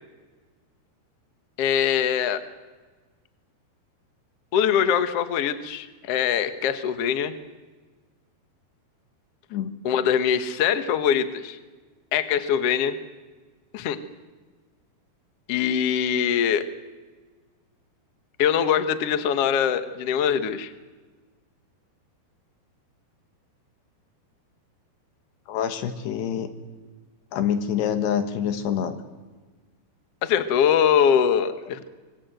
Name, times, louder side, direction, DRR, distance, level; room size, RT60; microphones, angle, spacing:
voice 1, 1.6-2.4 4.5-7.3 9.8-11.6 12.1-13.0 13.7-14.0 15.5-16.6 18.4-20.7 30.2-31.9, left 8 dB, 70° left, 10 dB, 1.4 m, -22 dB
voice 2, 25.5-26.5 27.3-29.0, left 8 dB, 90° left, 8 dB, 3.6 m, -26 dB
25.5 x 20.5 x 7.9 m, 1.3 s
omnidirectional pair, 4.7 m